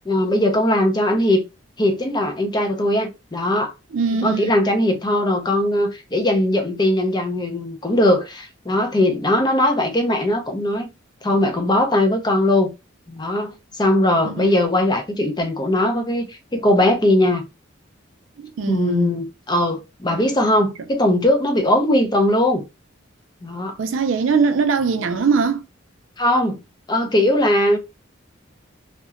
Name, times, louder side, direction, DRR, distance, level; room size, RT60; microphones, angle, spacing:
voice 1, 0.1-1.4 1.8-3.7 4.2-10.9 11.2-12.7 13.1-17.4 18.7-22.6 23.4-23.8 26.2-26.6 26.9-27.8, left 1 dB, 20° left, 0.5 m, -19 dB
voice 2, 3.9-4.5 14.3-14.6 18.4-19.1 23.8-25.7, right 5 dB, 70° right, 0.4 m, -21 dB
2.8 x 2.1 x 2.4 m
head